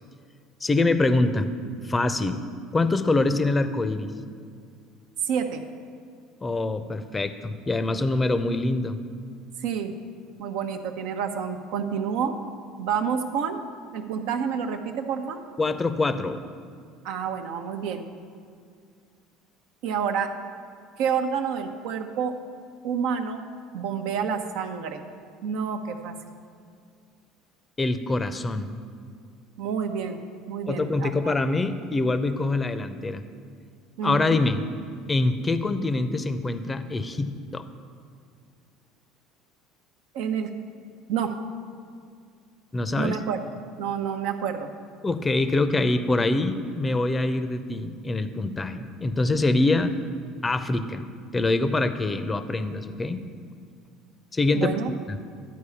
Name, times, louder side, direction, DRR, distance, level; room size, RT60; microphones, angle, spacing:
voice 1, 0.6-1.5 1.8-2.4 2.7-4.1 6.4-9.0 15.6-16.4 27.8-28.7 30.7-33.2 34.0-34.6 35.1-37.7 42.7-43.2 45.0-49.9 50.4-51.1 51.3-53.2 54.3-54.7 55.1-55.2, left 2 dB, 20° left, 10 dB, 0.7 m, -24 dB
voice 2, 5.2-5.6 9.6-9.9 10.4-12.3 12.8-13.6 13.9-15.4 17.0-18.1 19.8-20.3 21.0-22.3 22.8-23.4 23.7-25.0 25.4-26.1 29.6-30.2 30.5-31.3 34.0-34.5 40.1-40.5 41.1-41.3 43.0-43.4 43.8-44.7 54.5-54.9, right 7 dB, 65° right, 6 dB, 0.8 m, -28 dB
11.5 x 4.7 x 7.0 m, 2.2 s
hypercardioid pair, 70°, 0 cm